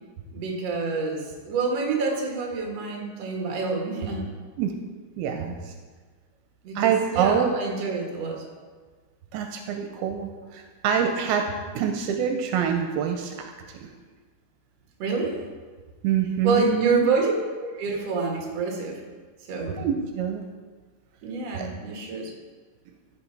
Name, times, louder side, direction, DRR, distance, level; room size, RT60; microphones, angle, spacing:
voice 1, 0.3-4.3 6.6-8.4 15.0-15.4 16.2-17.3 17.6-19.0 19.5-19.9 21.2-22.3, right 4 dB, 50° right, 0 dB, 2.4 m, -27 dB
voice 2, 5.2-5.7 6.8-7.5 9.3-11.5 11.8-13.5 13.8-13.9 16.0-17.1 19.8-20.4 21.6-21.7, right 8 dB, 80° right, 4 dB, 2.6 m, -25 dB
15.0 x 5.6 x 4.6 m, 1.4 s
omnidirectional pair, 4.4 m